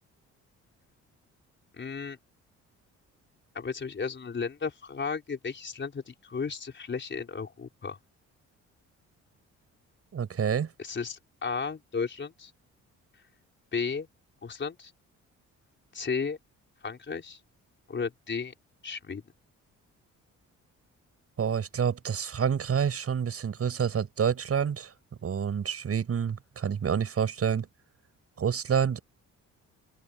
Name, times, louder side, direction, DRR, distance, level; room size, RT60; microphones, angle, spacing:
voice 1, 1.7-2.2 3.5-8.0 10.8-12.5 13.7-14.1 14.4-14.9 15.9-16.4 16.8-17.4 17.9-18.5 18.8-19.2, left 5 dB, 40° left, 4.6 m, -34 dB
voice 2, 10.1-10.7 21.4-24.9 25.2-27.7 28.4-29.0, right 7 dB, 50° right, 7.1 m, -28 dB
open air
cardioid pair, 90°, 30 cm